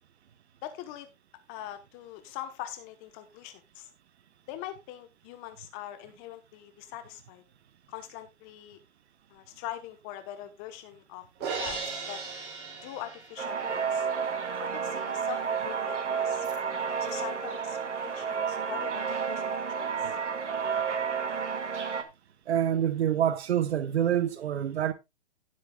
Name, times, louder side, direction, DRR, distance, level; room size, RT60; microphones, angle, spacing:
voice 1, 0.6-1.1 1.5-3.9 4.5-7.4 7.9-8.8 9.3-12.2 12.8-14.1 14.6-17.8 18.0-20.2, left 12 dB, 25° left, 1.0 m, -42 dB
Crash cymbal, 11.4-13.7, right 4 dB, 30° right, 4.3 m, -36 dB
sound 1, 13.4-22.0, right 6 dB, 90° right, 2.1 m, -31 dB
voice 2, 22.5-24.9, right 10 dB, 65° right, 1.0 m, -26 dB
17.0 x 7.7 x 2.3 m
hypercardioid pair, 140°, 35 cm